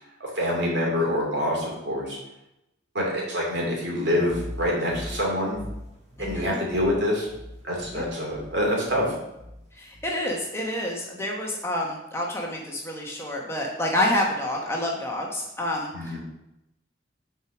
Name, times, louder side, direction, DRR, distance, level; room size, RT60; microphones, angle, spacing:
voice 1, 0.3-2.2 2.9-5.6 6.2-7.3 7.6-9.1 15.9-16.2, left 1 dB, 60° right, -2 dB, 2.5 m, -26 dB
sound 1, 4.3-10.3, equal, 35° right, 1.6 m, -41 dB
voice 2, 6.2-6.6 7.9-8.1 9.7-16.2, left 1 dB, 15° left, -1 dB, 1.0 m, -28 dB
6.5 x 4.6 x 6.0 m, 0.87 s
head